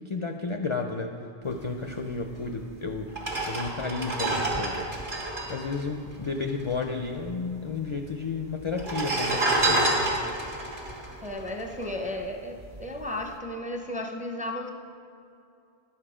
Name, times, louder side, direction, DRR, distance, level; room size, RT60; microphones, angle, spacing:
voice 1, 0.1-3.1 3.4-4.8 5.5-10.2, left 4 dB, 45° left, 4 dB, 0.4 m, -32 dB
sound 1, 2.4-2.5 3.1-6.8 7.0-7.1 7.3-8.0 8.7-12.2 12.6-12.8, right 2 dB, 55° right, 1.7 m, -28 dB
voice 2, 11.2-12.5 12.8-14.7, left 1 dB, 10° right, 2 dB, 0.5 m, -34 dB
10.5 x 7.2 x 4.9 m, 2.6 s
omnidirectional pair, 1.0 m